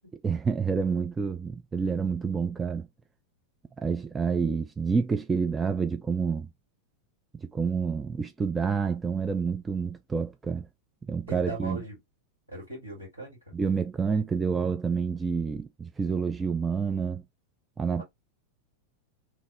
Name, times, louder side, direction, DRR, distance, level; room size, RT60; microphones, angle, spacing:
voice 1, 0.2-2.9 3.8-6.5 7.4-10.7 11.1-11.8 13.5-17.2 17.8-18.0, right 5 dB, 15° right, 0.3 m, -28 dB
voice 2, 11.3-12.0 12.5-13.4 18.0-18.1, right 2 dB, 85° right, 1.9 m, -38 dB
3.0 x 2.0 x 3.4 m
figure-of-eight pair, 90°, 0 cm